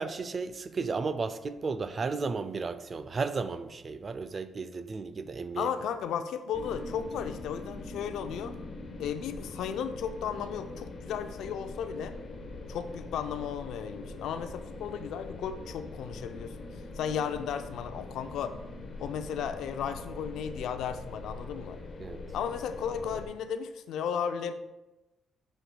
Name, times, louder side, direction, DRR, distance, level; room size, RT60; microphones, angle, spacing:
voice 1, 0.0-5.7 22.0-22.2, right 4 dB, 40° right, 0.4 m, -34 dB
voice 2, 5.6-8.5 9.0-12.1 12.7-16.7 16.9-18.6 19.0-21.8 22.3-24.5, left 8 dB, 80° left, 0.4 m, -34 dB
sound 1, 6.5-23.3, left 2 dB, 45° left, 0.9 m, -43 dB
7.6 x 6.4 x 2.2 m
cardioid pair, 90°, 0 cm